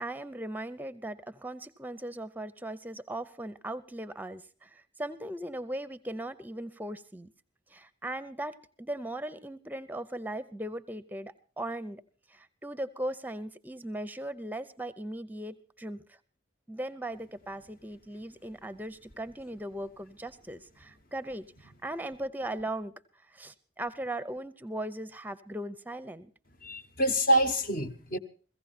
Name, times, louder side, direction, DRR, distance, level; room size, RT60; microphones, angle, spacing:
voice 1, 0.0-7.3 7.7-12.0 12.3-16.2 16.7-22.9 23.3-26.3, right 1 dB, 10° right, 14 dB, 0.6 m, -38 dB
voice 2, 26.6-28.2, right 1 dB, 45° left, 9 dB, 1.1 m, -26 dB
16.5 x 15.5 x 4.3 m, 0.40 s
head